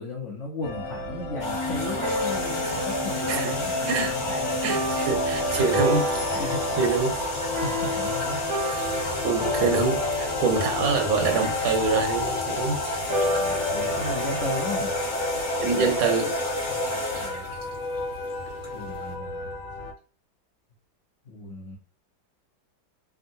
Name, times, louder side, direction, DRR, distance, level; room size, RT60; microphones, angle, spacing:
voice 1, 0.0-4.6 6.3-6.6 7.5-8.4 9.3-9.6 13.3-14.9 16.7-17.5 18.7-19.5 21.2-21.8, left 2 dB, 65° left, 0.7 m, -35 dB
sound 1, 0.6-19.9, left 2 dB, 85° left, 1.4 m, -33 dB
sound 2, 1.4-19.1, left 1 dB, 40° left, 1.4 m, -31 dB
sound 3, 2.0-16.7, left 1 dB, 25° right, 0.7 m, -32 dB
voice 2, 3.9-6.5 6.8-7.2 9.2-12.8 15.6-16.4, right 5 dB, 85° right, 1.4 m, -26 dB
3.6 x 2.1 x 2.6 m
omnidirectional pair, 2.1 m